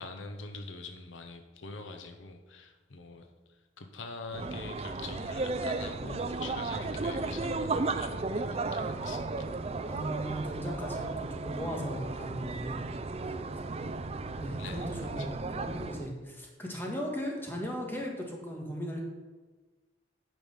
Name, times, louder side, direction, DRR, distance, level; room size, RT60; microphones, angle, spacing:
voice 1, 0.0-3.3 3.8-9.5 14.6-15.3, left 3 dB, 85° left, 6 dB, 0.8 m, -44 dB
sound 1, 4.3-16.1, right 3 dB, 30° right, 0.4 m, -34 dB
voice 2, 9.9-12.8 14.4-19.0, equal, 10° left, -1 dB, 1.6 m, -37 dB
9.0 x 5.4 x 6.5 m, 1.3 s
head